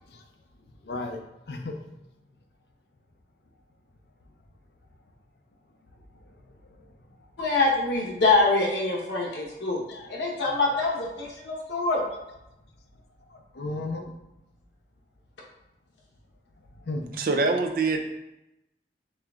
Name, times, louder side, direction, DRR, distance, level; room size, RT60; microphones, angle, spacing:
voice 1, 0.8-1.2 1.5-1.7 9.3-9.4 9.9-10.0 10.4-10.5 13.3-14.1 16.9-17.0, left 2 dB, 65° left, 4 dB, 0.5 m, -34 dB
voice 2, 7.4-9.8 10.1-12.1, left 3 dB, 90° left, -3 dB, 1.0 m, -24 dB
voice 3, 17.2-18.0, right 3 dB, 55° right, 5 dB, 0.4 m, -24 dB
4.4 x 3.4 x 2.4 m, 0.91 s
head